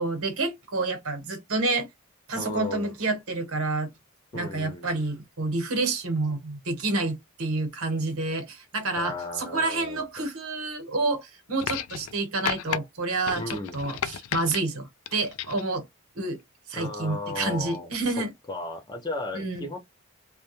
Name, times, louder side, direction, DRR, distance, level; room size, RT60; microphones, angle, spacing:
voice 1, 0.0-1.9 2.3-3.9 4.3-15.8 16.1-16.4 16.7-18.3 19.3-19.6, right 3 dB, 75° right, 0.9 m, -29 dB
voice 2, 2.3-2.9 4.3-5.0 9.0-10.2 13.3-13.8 16.7-19.8, left 2 dB, 20° left, 0.5 m, -35 dB
sound 1, 11.6-12.2 12.5-12.8 13.3-14.6 15.1-15.7 16.7-16.8, left 9 dB, 75° left, 0.3 m, -33 dB
2.2 x 2.1 x 3.0 m
head